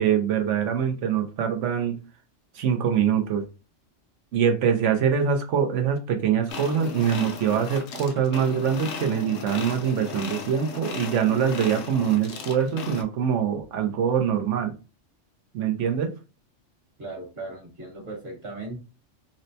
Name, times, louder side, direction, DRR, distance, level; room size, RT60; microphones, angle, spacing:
voice 1, 0.0-2.0 2.5-3.4 4.3-14.7 15.5-16.1, right 8 dB, 85° right, 5 dB, 1.0 m, -24 dB
sound 1, 6.5-13.0, left 5 dB, 70° left, 0.8 m, -36 dB
voice 2, 17.0-18.8, right 2 dB, 55° right, -1 dB, 1.6 m, -37 dB
4.1 x 2.1 x 2.7 m, 0.32 s
omnidirectional pair, 1.2 m